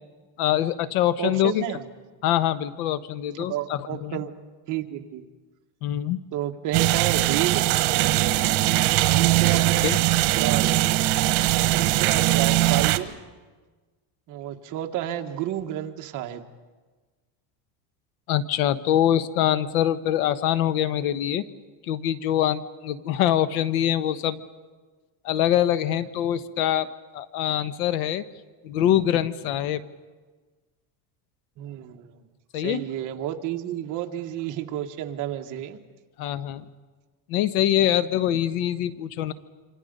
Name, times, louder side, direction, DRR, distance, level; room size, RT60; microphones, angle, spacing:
voice 1, 0.4-1.6 2.2-4.2 5.8-6.2 9.8-10.0 18.3-21.5 21.8-24.4 25.2-26.9 27.1-28.2 28.6-29.8 32.5-32.8 36.2-36.7 37.3-39.3, left 11 dB, 85° left, 13 dB, 1.2 m, -24 dB
voice 2, 1.2-1.8 3.5-4.3 4.7-5.2 6.3-7.6 9.1-9.9 10.4-10.8 11.8-13.1 14.3-16.4 31.6-32.2 32.5-35.8, right 11 dB, 45° right, 5 dB, 1.5 m, -31 dB
sound 1, 6.7-13.0, right 16 dB, 80° right, 1.3 m, -21 dB
27.0 x 26.0 x 5.4 m, 1.4 s
cardioid pair, 160°, 43 cm